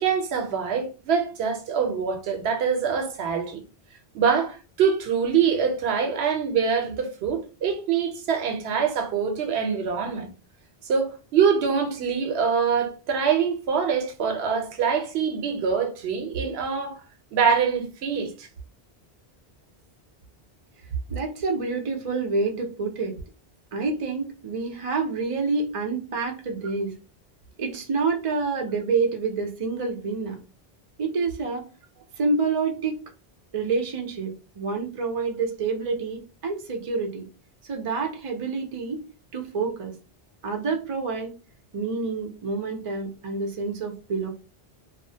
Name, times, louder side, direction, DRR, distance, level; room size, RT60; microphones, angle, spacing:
voice 1, 0.0-3.6 4.1-10.3 10.8-17.0 17.3-18.5, right 6 dB, 85° right, 0.9 m, -24 dB
voice 2, 21.1-23.2 23.7-26.9 27.6-30.4 31.0-31.7 32.2-33.0 33.5-37.3 37.6-39.0 39.3-39.9 40.4-41.3 41.7-44.3, right 4 dB, 40° right, 0.5 m, -28 dB
2.4 x 2.0 x 2.7 m
omnidirectional pair, 1.0 m